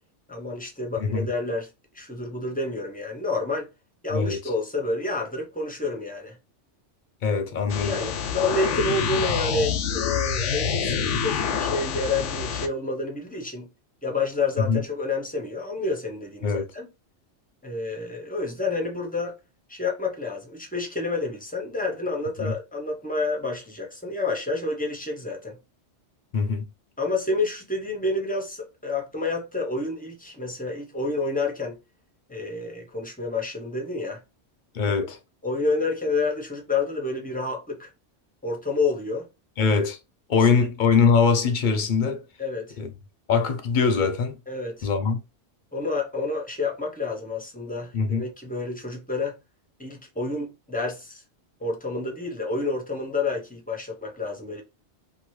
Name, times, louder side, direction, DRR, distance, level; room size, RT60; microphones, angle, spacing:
voice 1, 0.3-1.7 1.9-3.7 4.0-6.4 7.8-13.7 14.0-16.9 17.6-19.4 19.7-25.6 27.0-31.8 32.3-34.2 35.4-37.9 38.4-39.3 40.4-40.5 42.4-42.7 44.5-44.9 45.7-49.3 49.8-51.2 51.6-54.6, left 3 dB, 10° left, 0.6 m, -29 dB
voice 2, 7.2-8.0 14.7-14.8 16.4-16.6 22.4-22.5 26.3-26.7 34.7-35.2 39.6-40.0 40.3-42.2 42.8-42.9 43.3-44.4 44.8-45.2 47.9-48.2, left 5 dB, 55° left, 0.6 m, -22 dB
sound 1, 7.7-12.7, left 7 dB, 85° left, 0.9 m, -27 dB
2.7 x 2.6 x 3.1 m
omnidirectional pair, 1.2 m